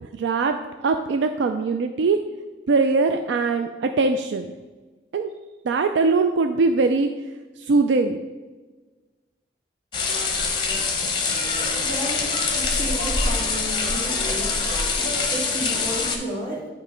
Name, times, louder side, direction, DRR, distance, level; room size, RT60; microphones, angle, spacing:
voice 1, 0.0-2.2 2.7-4.5 5.1-5.3 5.6-7.1 7.6-8.2, right 4 dB, 85° right, 6 dB, 0.4 m, -21 dB
sound 1, 9.9-16.2, left 4 dB, 25° left, 0.8 m, -24 dB
voice 2, 11.8-16.7, right 1 dB, 50° right, -5 dB, 2.3 m, -33 dB
9.4 x 3.2 x 5.0 m, 1.3 s
head